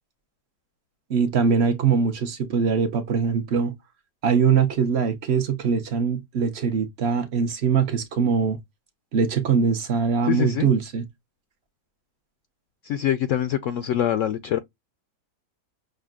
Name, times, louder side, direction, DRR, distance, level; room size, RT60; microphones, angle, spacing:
voice 1, 1.1-3.7 4.2-8.6 9.1-11.1, right 6 dB, 55° right, 0.8 m, -22 dB
voice 2, 10.3-10.7 12.8-14.6, left 10 dB, 70° left, 0.7 m, -24 dB
6.4 x 2.2 x 2.4 m
omnidirectional pair, 1.7 m